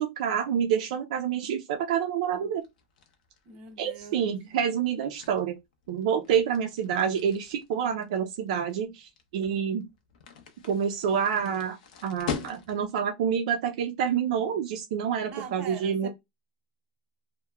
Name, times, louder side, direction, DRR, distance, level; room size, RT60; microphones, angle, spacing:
voice 1, 0.0-2.6 3.8-5.5 5.9-9.9 10.7-16.1, right 8 dB, 65° right, 0.4 m, -28 dB
sound 1, 2.6-13.0, left 6 dB, 80° left, 0.6 m, -42 dB
voice 2, 3.4-4.3 4.6-4.7 15.3-16.1, right 5 dB, 30° right, 0.7 m, -43 dB
2.9 x 2.1 x 2.2 m
supercardioid pair, 165°, 4 cm